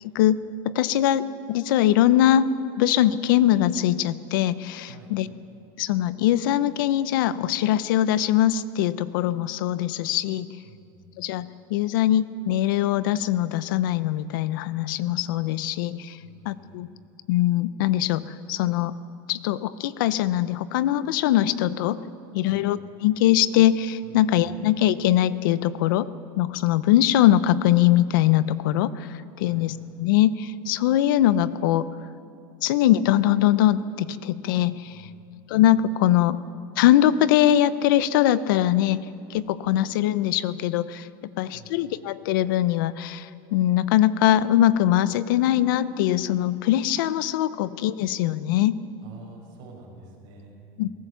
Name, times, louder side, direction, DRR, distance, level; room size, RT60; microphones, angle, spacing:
voice 1, 0.0-5.3 5.8-10.5 11.2-16.2 16.4-16.9 17.3-19.0 19.3-22.0 22.3-26.1 26.4-31.9 32.6-35.0 35.5-36.4 36.8-39.0 39.3-41.1 41.4-48.8 50.8-50.9, left 12 dB, 70° left, 15 dB, 0.7 m, -22 dB
voice 2, 10.6-11.0 16.2-16.7 22.4-22.7 24.0-24.5 29.4-29.7 34.9-35.3 41.5-41.7 49.0-50.7, right 4 dB, 40° right, -1 dB, 6.0 m, -48 dB
22.0 x 18.5 x 7.0 m, 2.5 s
supercardioid pair, 170°, 11 cm